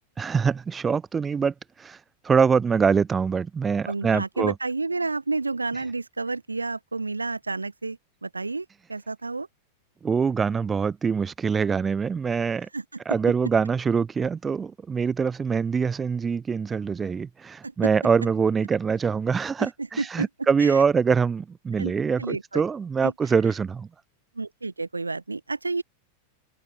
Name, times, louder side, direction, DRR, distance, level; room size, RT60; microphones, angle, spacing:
voice 1, 0.2-4.5 10.0-12.7 13.1-23.9, right 6 dB, 15° right, 0.5 m, -24 dB
voice 2, 3.8-9.5 12.7-12.8 17.6-17.7 19.6-19.7 20.0-20.3 20.6-20.8 21.7-21.9 22.2-22.6 23.0-23.1 24.3-25.8, right 3 dB, 80° right, 1.4 m, -30 dB
figure-of-eight pair, 90°, 0 cm